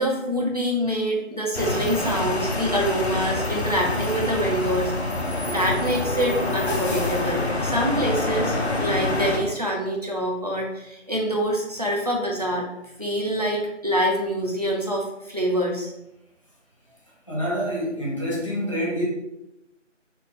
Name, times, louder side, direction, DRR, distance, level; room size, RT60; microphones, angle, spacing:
voice 1, 0.0-4.9 5.5-12.7 13.0-15.9, equal, 30° right, -1 dB, 0.7 m, -25 dB
sound 1, 1.5-9.4, left 2 dB, 60° left, 0.9 m, -26 dB
voice 2, 17.3-19.0, equal, 25° left, -6 dB, 0.9 m, -27 dB
4.1 x 3.1 x 3.6 m, 0.88 s
figure-of-eight pair, 170°, 37 cm